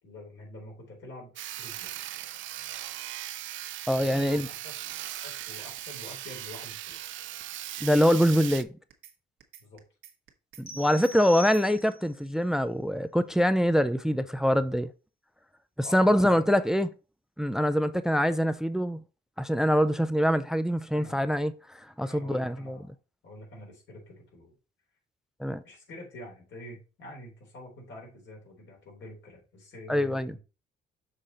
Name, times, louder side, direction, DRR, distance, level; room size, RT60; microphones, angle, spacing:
voice 1, 0.0-1.9 4.0-4.7 5.2-7.0 9.6-9.8 15.8-16.6 20.9-21.2 22.0-22.9 23.2-24.5 25.6-30.4, left 1 dB, 65° left, 3.7 m, -46 dB
Sawing, 1.4-8.6, right 14 dB, 75° right, 0.5 m, -39 dB
voice 2, 3.9-4.5 7.8-8.7 10.6-14.9 15.8-16.9 17.4-19.0 19.4-22.8 25.4-25.6 29.9-30.4, equal, 5° right, 0.4 m, -24 dB
sound 1, 4.0-4.6 4.9-5.1 5.4-6.6 6.9-7.1 7.4-8.6 8.9-9.1 9.4-10.6 10.9-11.1 11.4-11.8, right 10 dB, 90° right, 1.1 m, -51 dB
sound 2, 10.7-12.2, equal, 30° left, 0.9 m, -42 dB
6.5 x 3.8 x 4.1 m
cardioid pair, 90°, 20 cm